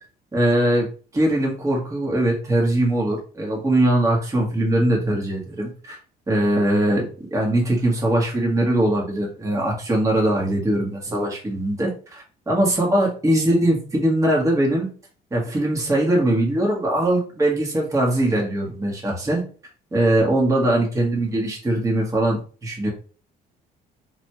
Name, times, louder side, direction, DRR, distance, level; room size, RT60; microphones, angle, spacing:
voice 1, 0.3-0.9 1.1-6.0 6.3-14.9 15.3-19.4 19.9-22.9, right 1 dB, 20° right, -2 dB, 1.2 m, -21 dB
5.9 x 2.2 x 3.0 m, 0.39 s
cardioid pair, 110°, 17 cm